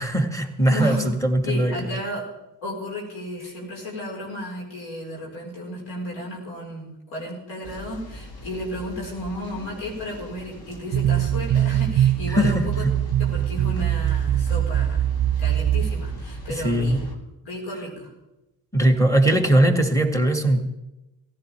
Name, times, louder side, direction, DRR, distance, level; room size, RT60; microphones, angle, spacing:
voice 1, 0.0-1.9 12.3-12.7 16.5-17.0 18.7-20.6, right 1 dB, 5° left, 5 dB, 2.2 m, -20 dB
voice 2, 0.6-1.1 1.4-2.3 2.6-12.8 13.2-15.1 15.4-17.0 17.4-18.1, left 1 dB, 75° left, -2 dB, 4.9 m, -33 dB
sound 1, 7.6-17.2, left 1 dB, 50° left, 2.1 m, -40 dB
sound 2, 10.9-16.5, right 11 dB, 40° right, 0.5 m, -22 dB
19.0 x 15.0 x 3.5 m, 0.96 s
hypercardioid pair, 40°, 47 cm